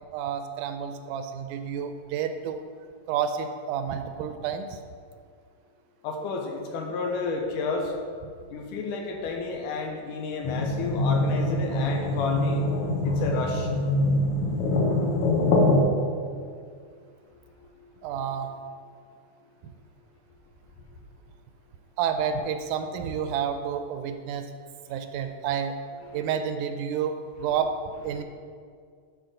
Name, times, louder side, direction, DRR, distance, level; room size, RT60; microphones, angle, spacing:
voice 1, 0.1-2.6 3.1-4.7 13.1-13.2 18.0-18.5 19.6-19.7 22.0-24.5 24.9-25.8 26.1-27.8 28.0-28.2, right 7 dB, 85° right, 8 dB, 2.1 m, -30 dB
voice 2, 6.0-7.9 8.5-12.7 13.0-13.7 26.0-26.3 28.1-28.2, left 3 dB, 90° left, 2 dB, 2.5 m, -31 dB
sound 1, 10.4-15.8, left 2 dB, 65° left, 1.4 m, -24 dB
11.5 x 5.2 x 3.8 m, 2.1 s
omnidirectional pair, 3.5 m